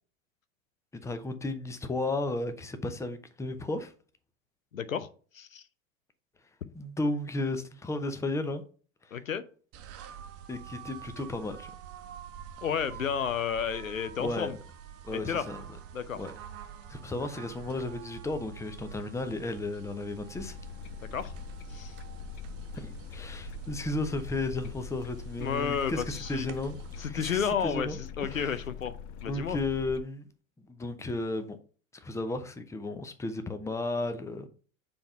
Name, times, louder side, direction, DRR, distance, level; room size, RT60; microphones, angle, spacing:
voice 1, 0.9-3.9 6.7-8.6 9.0-9.2 10.5-11.7 14.2-14.6 15.0-15.6 16.2-16.3 16.9-20.6 22.7-28.6 29.3-30.3 30.6-31.6 32.0-34.5, left 2 dB, 5° left, 0.7 m, -34 dB
voice 2, 4.7-5.1 5.3-5.6 9.1-9.4 12.6-14.6 15.1-15.4 15.9-16.2 21.0-21.3 21.7-21.9 25.4-26.5 27.0-28.9 29.2-29.6, left 7 dB, 85° left, 0.7 m, -32 dB
sound 1, 9.7-27.1, right 9 dB, 35° right, 1.0 m, -46 dB
sound 2, 20.3-30.0, left 8 dB, 45° left, 0.5 m, -43 dB
7.0 x 3.6 x 5.5 m
figure-of-eight pair, 80°, 39 cm